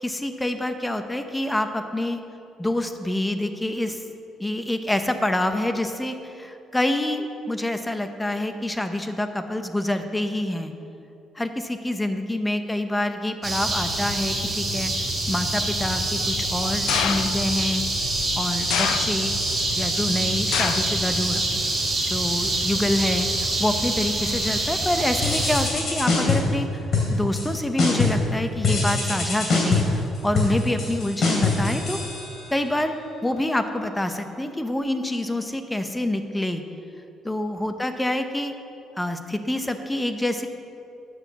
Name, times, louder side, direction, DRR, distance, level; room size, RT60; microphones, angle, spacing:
voice 1, 0.0-2.2 2.6-4.0 4.4-10.7 11.3-14.9 15.3-17.9 18.4-19.4 19.7-21.4 22.0-32.0 32.5-32.9 33.2-36.6 37.2-38.5 38.9-40.5, left 1 dB, 10° left, 7 dB, 0.7 m, -27 dB
sound 1, 13.4-25.7, right 2 dB, 25° right, 2.4 m, -25 dB
sound 2, 16.9-17.6 18.7-19.5 20.5-21.0 21.4-21.9 22.7-22.8, left 11 dB, 80° left, 0.3 m, -27 dB
sound 3, 25.2-26.6 26.9-27.5 27.8-28.3 28.6-32.6, left 3 dB, 45° left, 2.7 m, -24 dB
9.4 x 6.5 x 7.0 m, 2.7 s
cardioid pair, 110°, 0 cm